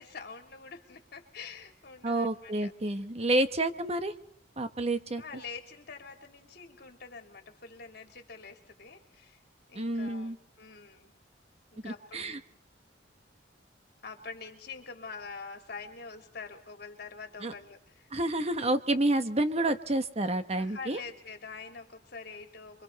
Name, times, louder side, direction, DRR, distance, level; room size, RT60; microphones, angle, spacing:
voice 1, 0.0-2.7 3.3-3.5 5.2-9.4 9.7-11.1 11.7-12.4 14.0-18.1 20.6-22.8, left 4 dB, 60° left, 4 dB, 3.4 m, -45 dB
voice 2, 2.0-4.1 4.6-5.2 9.7-10.4 11.8-12.4 17.4-17.5 18.1-21.0, right 1 dB, 35° right, 9 dB, 1.2 m, -29 dB
27.5 x 24.5 x 4.1 m, 0.70 s
head